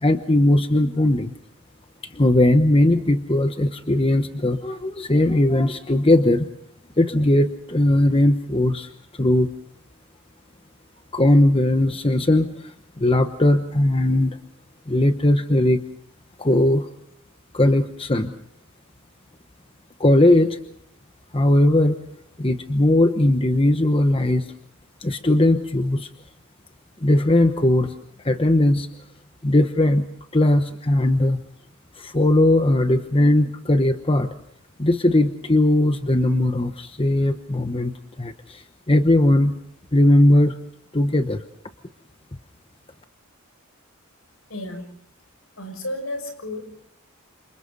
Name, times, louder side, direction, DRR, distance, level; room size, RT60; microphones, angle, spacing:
voice 1, 0.0-1.3 2.0-6.5 7.0-9.5 11.1-12.7 13.0-14.4 14.9-15.8 16.4-16.9 17.5-18.3 20.0-20.6 21.3-22.0 22.4-24.5 25.0-26.1 27.0-27.9 28.2-28.9 29.4-30.0 30.3-31.4 32.0-34.3 34.8-39.6 39.9-40.6 40.9-41.4, left 1 dB, 25° left, 7 dB, 1.0 m, -19 dB
voice 2, 44.5-44.9 45.6-46.8, left 1 dB, 75° left, 6 dB, 6.2 m, -32 dB
29.0 x 27.5 x 4.0 m, 0.70 s
head